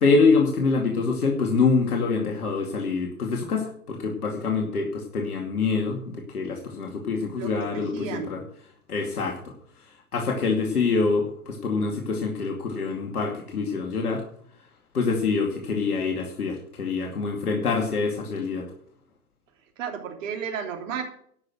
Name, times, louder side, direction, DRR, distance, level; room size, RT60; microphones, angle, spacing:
voice 1, 0.0-8.4 8.9-9.5 10.1-14.2 14.9-18.7, left 4 dB, 80° left, 1 dB, 2.5 m, -25 dB
voice 2, 7.4-8.4 19.8-21.0, right 7 dB, 60° right, 3 dB, 3.4 m, -33 dB
12.0 x 6.3 x 9.2 m, 0.64 s
hypercardioid pair, 125°, 44 cm